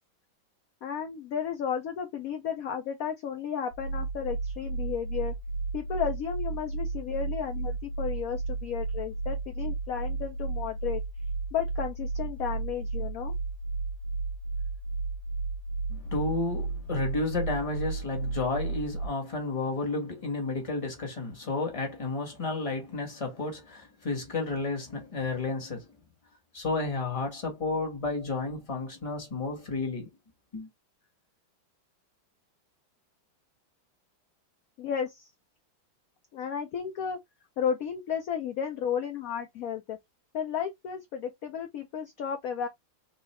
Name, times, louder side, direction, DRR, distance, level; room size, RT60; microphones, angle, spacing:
voice 1, 0.8-5.3 5.7-11.0 11.5-13.3 34.8-35.3 36.3-37.2 37.6-40.0 40.3-42.7, left 7 dB, 65° left, 0.9 m, -33 dB
sound 1, 3.7-19.1, right 3 dB, 80° left, 1.7 m, -33 dB
voice 2, 15.9-25.9 26.5-30.1 30.5-30.7, left 3 dB, 20° left, 1.3 m, -32 dB
3.6 x 3.0 x 3.1 m
omnidirectional pair, 2.2 m